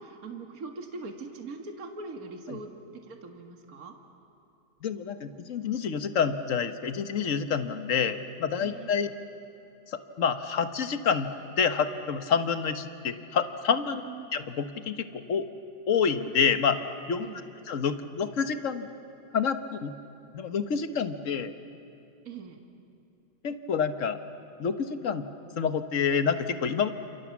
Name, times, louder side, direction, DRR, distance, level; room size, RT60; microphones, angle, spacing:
voice 1, 0.0-4.0 8.6-9.1 14.0-14.3 17.2-17.5 22.3-22.6, right 3 dB, 55° right, 4 dB, 2.3 m, -42 dB
voice 2, 4.8-9.1 9.9-14.0 14.3-15.4 15.9-16.8 17.1-17.3 17.7-18.9 19.3-19.9 20.3-21.5 23.4-24.2 24.6-25.3 25.6-26.9, left 6 dB, 50° left, 10 dB, 1.4 m, -28 dB
29.5 x 28.0 x 7.3 m, 2.6 s
omnidirectional pair, 1.9 m